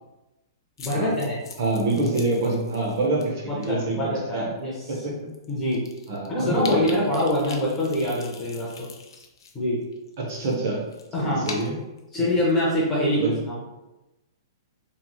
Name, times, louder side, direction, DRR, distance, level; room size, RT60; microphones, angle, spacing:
sound 1, 0.8-3.2 3.6-3.9 4.6-4.7 5.0-5.1 5.3-9.5 9.8-12.6, left 4 dB, 80° left, 0.4 m, -42 dB
voice 1, 0.8-1.4 3.5-4.7 5.5-5.8 6.3-8.9 9.5-9.8 11.1-11.5 12.1-13.8, left 1 dB, 10° left, -6 dB, 0.4 m, -24 dB
voice 2, 1.6-4.5 4.9-5.2 6.1-7.0 10.2-10.8 11.2-11.8 13.2-13.3, right 2 dB, 40° right, -1 dB, 0.6 m, -26 dB
3.0 x 2.6 x 2.2 m, 1.0 s
hypercardioid pair, 180°, 2 cm